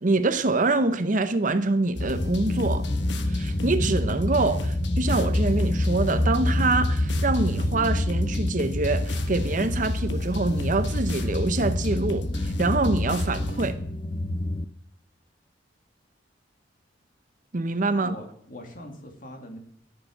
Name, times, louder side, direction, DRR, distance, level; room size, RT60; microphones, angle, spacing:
voice 1, 0.0-2.9 3.3-13.8 17.5-18.1, right 3 dB, 45° right, 0.7 m, -25 dB
sound 1, 1.9-13.7, left 2 dB, 70° left, 1.4 m, -32 dB
sound 2, 2.0-14.6, left 1 dB, 25° left, 0.5 m, -28 dB
voice 2, 17.9-19.6, left 1 dB, 45° left, 2.7 m, -42 dB
14.0 x 6.8 x 6.6 m
head